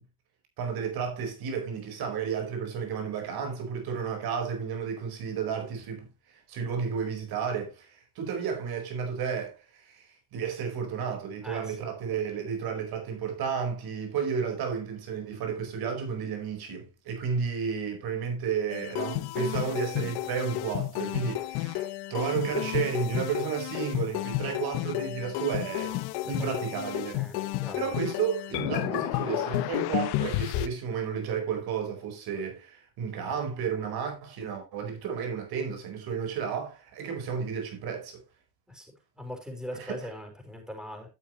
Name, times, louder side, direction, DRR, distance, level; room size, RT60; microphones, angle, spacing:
voice 1, 0.6-27.2 27.7-38.2 39.7-40.0, right 6 dB, 70° right, 4.6 m, -32 dB
voice 2, 11.4-11.8 25.9-26.0 26.2-26.3 26.8-28.0 38.7-41.1, left 1 dB, ahead, 4.6 m, -41 dB
sound 1, 18.7-30.7, left 17 dB, 80° left, 0.9 m, -31 dB
12.5 x 8.4 x 3.0 m
supercardioid pair, 85°, 38 cm